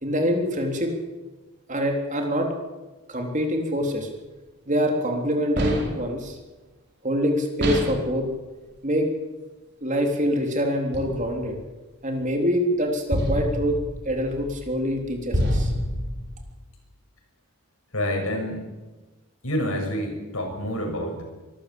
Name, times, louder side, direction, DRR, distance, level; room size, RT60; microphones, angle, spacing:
voice 1, 0.0-0.9 1.7-2.5 3.1-4.1 4.7-6.4 7.0-8.3 8.8-9.1 9.8-11.6 12.0-13.8 14.1-15.7, equal, 35° right, 3 dB, 3.6 m, -25 dB
sound 1, 5.6-6.1 7.6-8.1 10.9-11.6 13.1-16.5, equal, 50° right, 4.5 m, -28 dB
voice 2, 17.9-18.7 19.4-21.2, equal, 75° left, 2 dB, 6.8 m, -28 dB
24.0 x 14.0 x 8.6 m, 1.2 s
head